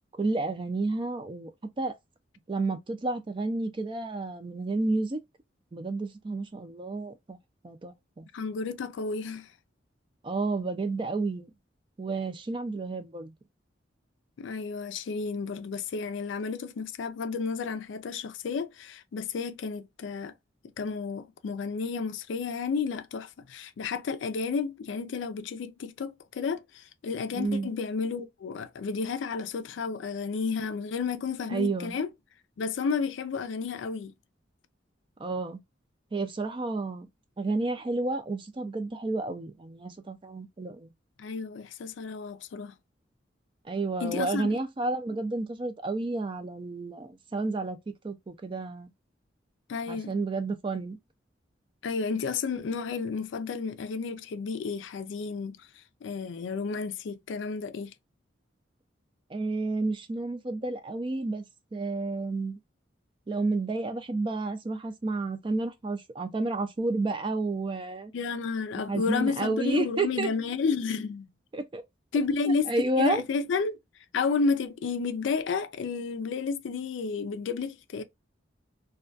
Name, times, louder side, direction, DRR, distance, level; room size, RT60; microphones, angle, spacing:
voice 1, 0.2-1.5 1.8-1.9 2.5-5.2 5.7-7.4 7.6-8.3 10.2-11.5 12.0-13.3 27.3-27.7 31.5-31.9 35.2-35.6 36.1-37.1 37.4-40.9 43.7-48.9 49.9-51.0 59.3-61.4 61.7-62.6 63.3-68.1 68.9-70.3 71.5-71.8 72.5-73.2, right 3 dB, 25° right, 0.3 m, -31 dB
voice 2, 8.3-9.5 14.4-20.3 20.8-32.1 32.6-34.1 41.2-42.7 44.0-44.6 49.7-50.1 51.8-55.6 56.0-57.9 68.1-71.3 72.1-73.8 74.1-78.0, left 5 dB, 75° left, 0.4 m, -31 dB
2.3 x 2.2 x 2.5 m
head